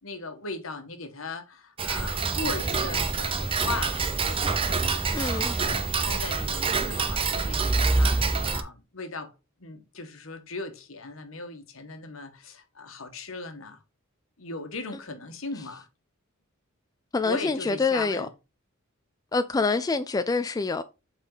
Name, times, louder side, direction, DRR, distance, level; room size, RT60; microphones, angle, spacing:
voice 1, 0.0-9.3 9.6-13.8 14.4-15.9 17.2-18.3, left 3 dB, 70° left, 1.3 m, -38 dB
Tick-tock, 1.8-8.6, right 4 dB, 25° right, 0.7 m, -26 dB
voice 2, 5.1-5.5 17.1-18.3 19.3-20.8, left 4 dB, 15° left, 0.3 m, -26 dB
7.8 x 4.1 x 3.9 m
head